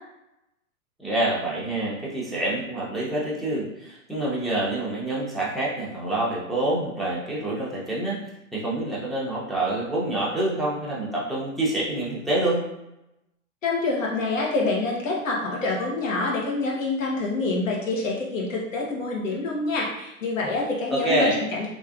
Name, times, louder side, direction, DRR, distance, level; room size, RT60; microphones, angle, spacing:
voice 1, 1.0-8.2 8.5-12.7 20.9-21.4, right 1 dB, ahead, -7 dB, 0.6 m, -26 dB
voice 2, 13.6-21.7, left 3 dB, 70° left, -2 dB, 1.2 m, -26 dB
3.3 x 2.9 x 2.4 m, 0.89 s
figure-of-eight pair, 110°, 41 cm